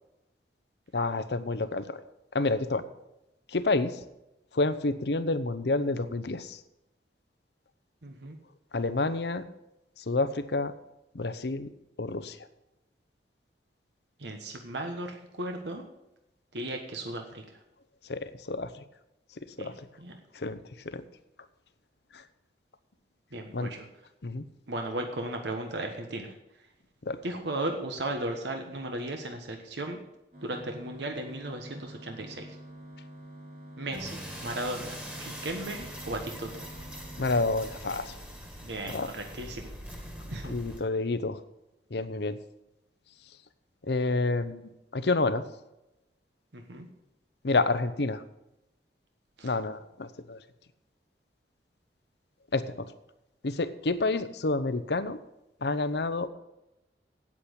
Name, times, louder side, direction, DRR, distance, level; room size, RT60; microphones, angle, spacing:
voice 1, 0.9-2.0 2.3-2.9 3.5-4.0 4.5-6.6 8.7-9.4 10.0-10.7 11.1-11.7 12.0-12.4 18.1-18.7 19.6-19.9 20.3-20.6 20.9-21.0 22.1-22.2 23.5-23.7 24.2-24.4 27.1-27.2 37.2-38.1 38.9-39.1 40.4-41.4 41.9-42.4 43.9-44.6 44.9-45.4 47.4-48.2 49.4-50.4 52.5-52.9 53.4-55.2 55.6-56.3, left 3 dB, 70° left, 13 dB, 0.8 m, -29 dB
voice 2, 8.0-8.4 14.2-15.8 16.5-17.6 19.6-19.7 20.0-20.2 23.3-23.9 24.7-26.3 27.2-30.0 30.4-32.6 33.8-36.7 38.6-39.6 40.3-40.5 46.5-46.9 49.4-49.5, right 1 dB, 80° right, 4 dB, 1.2 m, -36 dB
sound 1, 30.3-38.4, right 1 dB, 55° right, 3.0 m, -48 dB
sound 2, 33.9-40.8, equal, 10° right, 1.8 m, -43 dB
8.6 x 8.6 x 8.0 m, 0.92 s
head